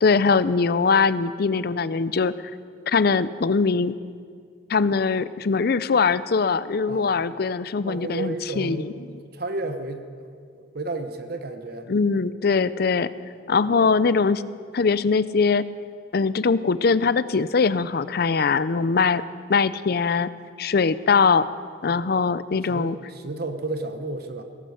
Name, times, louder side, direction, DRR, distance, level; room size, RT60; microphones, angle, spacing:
voice 1, 0.0-2.3 2.9-3.9 4.7-8.9 11.9-13.1 13.5-14.4 14.7-15.6 16.1-19.2 19.5-20.3 20.6-21.5 21.8-23.0, left 5 dB, 55° left, 16 dB, 0.5 m, -21 dB
voice 2, 6.9-7.3 7.8-8.9 9.3-10.0 10.6-11.9 21.9-22.0 22.7-24.4, right 2 dB, 55° right, 7 dB, 1.0 m, -32 dB
18.5 x 12.0 x 6.6 m, 2.1 s
head